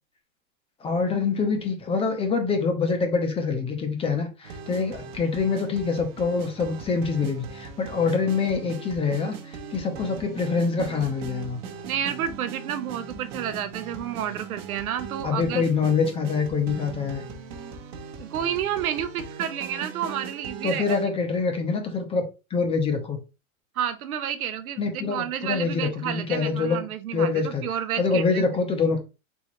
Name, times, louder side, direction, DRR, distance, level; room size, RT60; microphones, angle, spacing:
voice 1, 0.8-11.6 15.2-17.2 20.6-22.2 22.5-23.2 24.8-26.8 27.1-27.6 28.0-29.0, left 4 dB, 15° left, 0.7 m, -25 dB
sound 1, 4.4-21.1, right 5 dB, 45° right, 1.1 m, -39 dB
voice 2, 11.9-15.7 18.2-21.0 23.7-28.5, right 9 dB, 90° right, 0.8 m, -30 dB
4.4 x 3.5 x 3.0 m
supercardioid pair, 140°, 42 cm